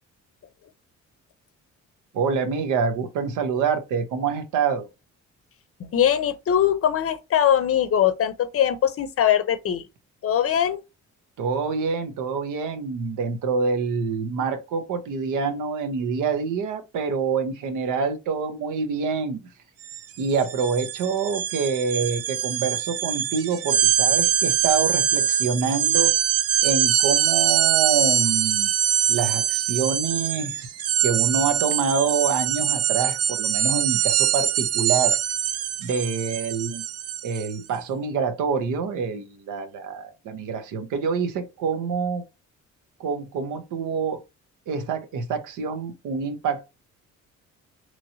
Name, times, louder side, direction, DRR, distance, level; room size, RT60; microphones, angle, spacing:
voice 1, 2.1-4.9 11.4-19.5 20.2-26.1 26.6-28.7 29.1-30.7 31.0-35.2 35.8-36.8 37.2-42.2 43.0-44.2 44.7-46.7, right 5 dB, 85° right, 0.8 m, -26 dB
voice 2, 5.8-9.8 10.2-10.8, left 10 dB, 50° left, 0.6 m, -21 dB
sound 1, 19.8-20.0 20.3-37.5, right 10 dB, 55° right, 0.5 m, -23 dB
3.0 x 2.7 x 2.7 m
cardioid pair, 90°, 30 cm